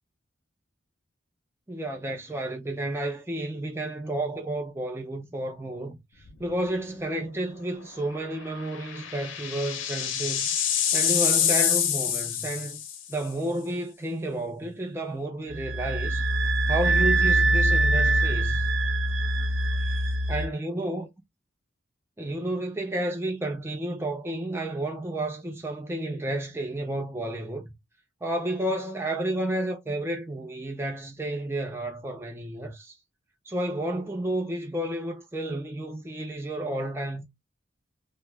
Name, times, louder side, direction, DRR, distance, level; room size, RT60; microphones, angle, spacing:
voice 1, 1.7-6.0 6.4-10.5 10.9-16.3 16.7-18.6 20.3-21.1 22.2-27.7 28.2-33.0 33.5-37.2, right 1 dB, 10° right, 0.5 m, -31 dB
sound 1, 6.3-6.6 7.0-7.1 8.5-13.1, left 9 dB, 75° left, 0.7 m, -26 dB
sound 2, 15.5-20.5, right 1 dB, 80° right, 0.7 m, -23 dB
2.8 x 2.1 x 3.2 m
head